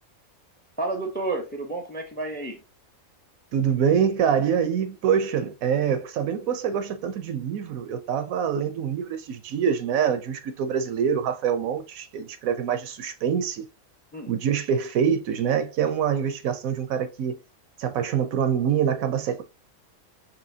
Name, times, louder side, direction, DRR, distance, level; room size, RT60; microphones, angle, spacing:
voice 1, 0.8-2.6 14.1-14.3, right 2 dB, 10° left, 0.5 m, -30 dB
voice 2, 3.5-13.6 14.3-17.4 17.8-19.4, right 8 dB, 75° right, 1.0 m, -25 dB
5.5 x 3.0 x 2.7 m
omnidirectional pair, 1.5 m